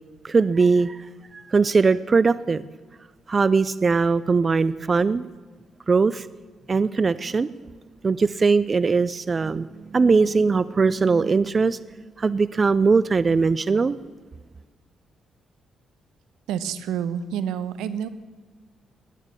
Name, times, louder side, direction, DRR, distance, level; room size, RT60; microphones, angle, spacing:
voice 1, 0.2-1.1 1.3-2.6 3.3-5.3 5.9-6.3 6.7-7.5 8.0-14.0, right 4 dB, 40° right, 17 dB, 0.5 m, -20 dB
voice 2, 16.5-18.1, right 8 dB, 80° right, 14 dB, 0.9 m, -28 dB
20.5 x 9.6 x 6.9 m, 1.4 s
supercardioid pair, 55°, 0 cm